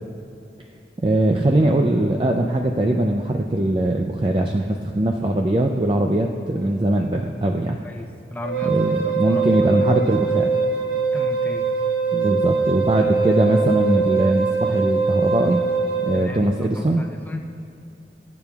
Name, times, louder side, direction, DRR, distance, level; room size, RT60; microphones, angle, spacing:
voice 1, 1.0-7.8 8.7-10.5 12.1-15.6 16.0-17.0, right 1 dB, 30° right, 2 dB, 0.4 m, -21 dB
voice 2, 7.8-8.8 9.0-9.5 11.1-11.7 16.1-16.5 16.8-17.4, left 1 dB, 10° left, 2 dB, 0.7 m, -35 dB
Wind instrument woodwind instrument, 8.4-16.3, right 4 dB, 65° right, 1.2 m, -22 dB
22.5 x 8.9 x 2.4 m, 2.7 s
head